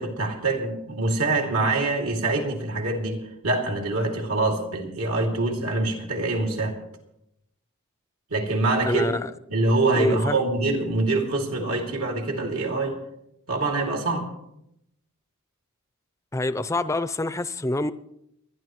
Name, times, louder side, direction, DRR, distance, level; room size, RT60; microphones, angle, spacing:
voice 1, 0.0-6.8 8.3-9.1 9.5-13.0 13.5-14.3, right 2 dB, 75° right, 2.6 m, -25 dB
voice 2, 8.9-9.3 9.9-10.4 16.3-17.9, left 2 dB, 15° left, 0.4 m, -26 dB
29.5 x 11.0 x 3.1 m
head